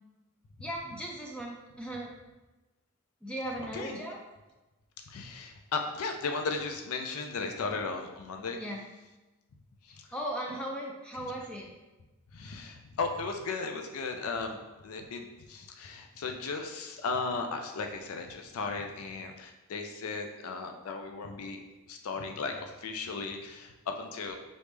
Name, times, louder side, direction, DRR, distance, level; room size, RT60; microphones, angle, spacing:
voice 1, 0.6-2.1 3.2-4.2 8.6-8.8 10.1-11.7, right 1 dB, 5° left, -2 dB, 0.3 m, -37 dB
voice 2, 5.1-8.6 9.8-10.1 12.3-14.6 14.8-21.6 21.9-24.4, left 4 dB, 75° left, 4 dB, 0.4 m, -36 dB
4.0 x 3.3 x 3.3 m, 1.1 s
head